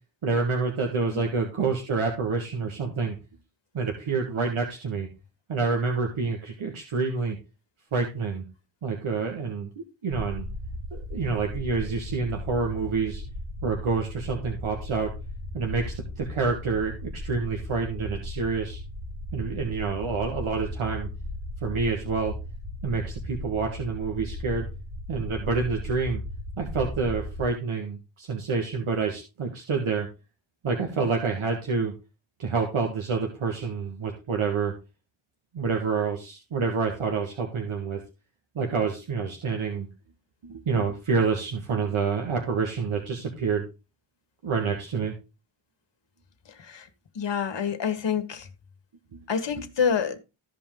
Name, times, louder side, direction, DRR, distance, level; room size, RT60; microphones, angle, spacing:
voice 1, 0.2-3.2 3.7-5.1 5.5-7.4 7.9-8.4 8.8-9.7 10.0-10.4 10.9-13.2 13.6-15.1 15.5-18.8 19.3-21.1 21.6-22.3 22.8-24.7 25.1-26.2 26.6-30.1 30.6-31.9 32.4-34.7 35.5-38.0 38.5-39.9 40.4-43.7 44.4-45.1 49.1-49.2 49.6-49.7, right 4 dB, 80° right, 1.8 m, -28 dB
sound 1, 10.1-27.5, left 1 dB, 60° right, 2.3 m, -36 dB
voice 2, 46.4-46.9 47.1-48.5 49.3-50.2, left 7 dB, 60° left, 1.4 m, -27 dB
14.0 x 5.2 x 3.8 m
wide cardioid pair, 85°, 49 cm